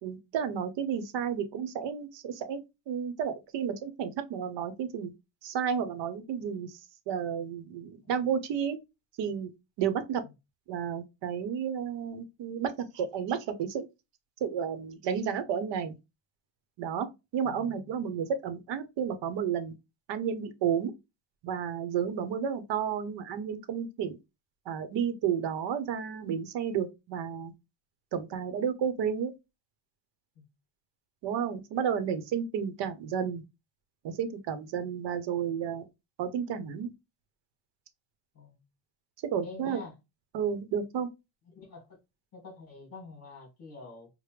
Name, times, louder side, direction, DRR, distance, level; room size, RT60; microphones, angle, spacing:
voice 1, 0.0-5.1 5.4-6.7 7.1-8.8 9.2-10.2 10.7-13.8 14.4-15.9 16.8-19.7 20.1-20.9 21.4-24.2 24.7-27.5 28.1-29.3 31.2-33.4 34.2-35.8 36.2-36.9 39.2-39.8 40.3-41.1, right 7 dB, 70° right, 0.8 m, -32 dB
voice 2, 17.4-18.0 30.4-30.5 38.3-38.6 39.4-39.9 41.5-42.0 42.3-44.1, left 4 dB, 35° left, 2.3 m, -47 dB
5.0 x 2.1 x 3.1 m
cardioid pair, 175°, 44 cm